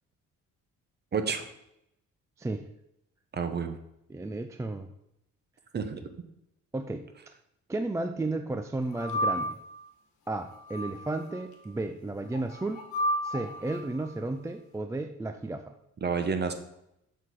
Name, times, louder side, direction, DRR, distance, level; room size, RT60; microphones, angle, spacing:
voice 1, 1.1-1.5 3.3-3.7 5.7-6.1 16.0-16.5, right 5 dB, 35° right, 7 dB, 0.9 m, -29 dB
voice 2, 4.1-4.9 6.7-7.1 7.7-9.6 10.3-12.8 13.2-15.7, right 2 dB, 10° right, 7 dB, 0.3 m, -33 dB
sound 1, 8.9-9.8 10.5-11.4 12.3-13.8, equal, 75° left, 1.4 m, -32 dB
6.6 x 4.1 x 4.7 m, 0.81 s
cardioid pair, 90°, 30 cm